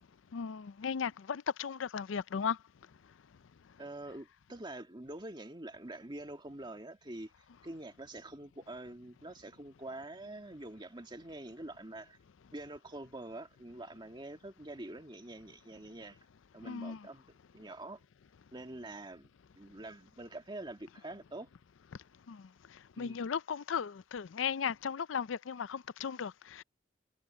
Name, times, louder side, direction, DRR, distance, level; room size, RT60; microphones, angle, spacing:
voice 1, 0.3-2.6 16.6-17.1 22.3-22.4 23.0-26.6, left 7 dB, 85° left, 0.5 m, -36 dB
voice 2, 3.8-7.3 7.6-12.2 12.5-16.2 16.5-17.2 17.5-18.0 18.5-19.3 19.6-21.5 23.0-23.2, right 1 dB, 25° right, 1.9 m, -46 dB
head